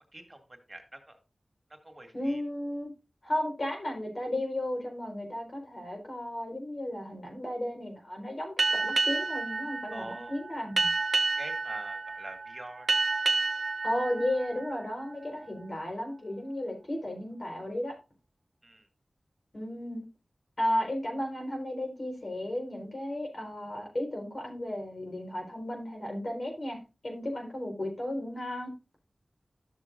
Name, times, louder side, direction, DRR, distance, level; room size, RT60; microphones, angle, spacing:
voice 1, 0.1-1.2 1.8-2.4 9.9-10.3 11.4-13.0 18.6-18.8, right 1 dB, 30° right, 5 dB, 2.1 m, -45 dB
voice 2, 2.1-2.9 3.2-8.5 8.8-10.9 13.8-17.9 19.5-20.0 20.6-26.8 27.0-28.7, left 1 dB, 55° left, 1 dB, 4.1 m, -34 dB
Boat Water vehicle, 8.6-15.6, right 3 dB, 75° right, 0.6 m, -30 dB
12.5 x 6.9 x 2.5 m, 0.28 s
cardioid pair, 45°, 0 cm